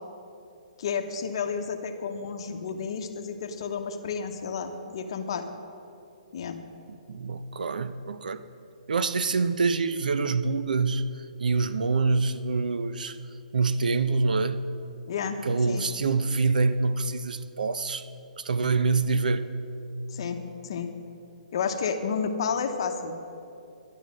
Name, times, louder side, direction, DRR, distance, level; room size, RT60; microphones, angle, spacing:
voice 1, 0.8-5.5 6.3-6.6 15.1-15.4 15.7-15.8 20.1-20.9 21.5-23.2, left 6 dB, 35° left, 5 dB, 0.9 m, -31 dB
voice 2, 7.1-8.4 8.9-11.1 11.4-13.2 13.5-14.6 15.4-18.1 18.4-19.5, right 4 dB, 75° right, 13 dB, 0.7 m, -26 dB
11.5 x 11.0 x 6.3 m, 2.7 s
hypercardioid pair, 175°, 4 cm